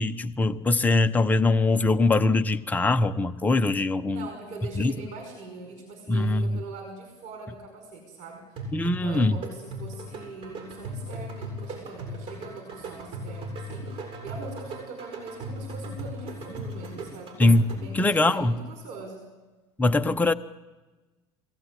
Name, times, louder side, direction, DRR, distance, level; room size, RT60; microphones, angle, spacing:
voice 1, 0.0-4.3 4.8-4.9 6.1-6.6 8.7-9.4 17.4-17.6 17.9-18.6 19.8-20.3, left 2 dB, 10° left, 7 dB, 0.8 m, -22 dB
voice 2, 4.1-17.4 17.8-19.2, right 3 dB, 60° right, 3 dB, 5.3 m, -42 dB
sound 1, 8.6-18.1, right 1 dB, 40° right, 7.4 m, -37 dB
22.0 x 17.0 x 9.8 m, 1.2 s
supercardioid pair, 100°, 15 cm